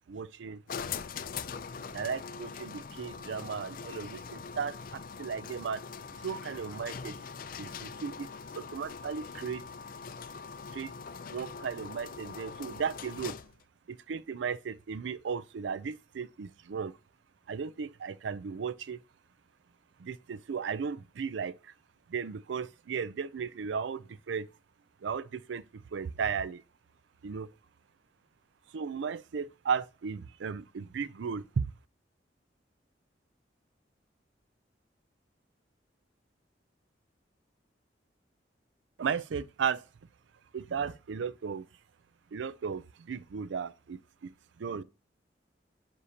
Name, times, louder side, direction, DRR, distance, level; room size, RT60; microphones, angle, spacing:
voice 1, 0.1-0.6 1.9-5.8 6.2-7.1 7.6-8.3 8.6-9.6 10.7-10.9 11.3-13.4 13.9-16.9 17.5-19.0 20.0-21.5 22.1-24.5 25.0-25.6 25.9-26.6 27.2-27.5 28.7-31.7 39.0-39.8 40.5-41.7 42.3-44.0 44.6-44.8, right 6 dB, 80° right, 0.4 m, -35 dB
sound 1, 0.7-13.6, left 6 dB, 50° left, 0.4 m, -42 dB
9.8 x 5.6 x 2.8 m
head